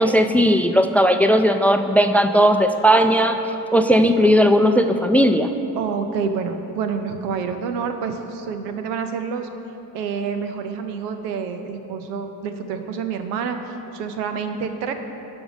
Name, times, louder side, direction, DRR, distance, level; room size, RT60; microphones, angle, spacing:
voice 1, 0.0-3.4 3.7-5.5, equal, 5° left, 8 dB, 0.4 m, -16 dB
voice 2, 5.8-9.5 9.9-14.9, right 6 dB, 90° right, 7 dB, 0.7 m, -28 dB
11.5 x 5.3 x 5.2 m, 2.9 s
hypercardioid pair, 45°, 47 cm